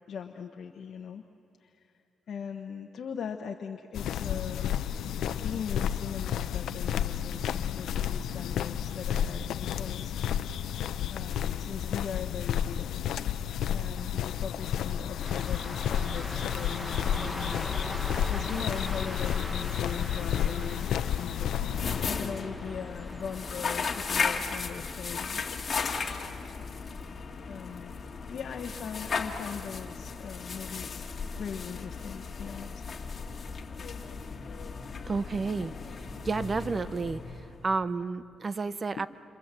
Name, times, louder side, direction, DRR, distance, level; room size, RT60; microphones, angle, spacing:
voice 1, 0.1-1.2 1.6-1.9 2.3-4.8 5.4-10.2 11.1-13.0 13.7-17.8 18.3-21.5 22.1-25.5 27.5-28.0 28.3-32.8 39.0-39.1, left 7 dB, 60° left, 3 dB, 1.1 m, -40 dB
sound 1, 3.9-22.1, left 9 dB, 85° left, 0.7 m, -31 dB
sound 2, 15.2-24.2, equal, 5° right, 1.3 m, -41 dB
sound 3, 21.6-37.7, left 5 dB, 40° left, 2.0 m, -36 dB
voice 2, 35.1-35.7 36.2-37.2 37.6-39.1, right 4 dB, 30° right, 13 dB, 0.7 m, -30 dB
28.5 x 25.0 x 7.6 m, 2.8 s
cardioid pair, 110°, 0 cm